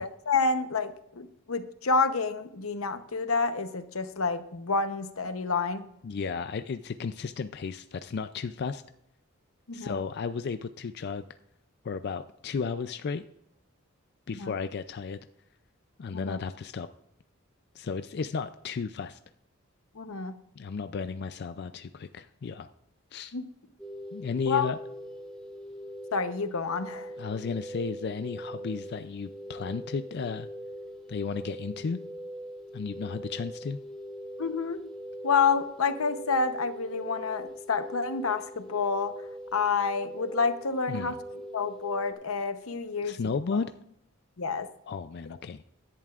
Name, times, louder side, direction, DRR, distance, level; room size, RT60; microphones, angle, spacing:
voice 1, 0.0-5.9 9.7-10.0 14.3-14.5 16.1-16.4 19.9-20.4 23.3-23.4 24.4-24.7 26.1-27.1 34.4-34.8 35.2-39.1 39.5-41.2 41.5-43.2 44.4-44.7, left 4 dB, 90° left, 10 dB, 0.9 m, -29 dB
voice 2, 6.0-8.8 9.7-11.2 11.8-13.2 14.3-15.2 16.0-16.9 17.7-19.2 20.6-22.7 23.1-23.3 24.1-24.8 27.2-30.5 31.1-32.0 32.7-33.8 40.9-41.2 43.0-43.7 44.9-45.6, left 5 dB, 50° left, 10 dB, 0.4 m, -34 dB
sound 1, 23.8-42.1, equal, 5° left, 1.6 m, -42 dB
16.0 x 11.0 x 2.4 m, 0.77 s
head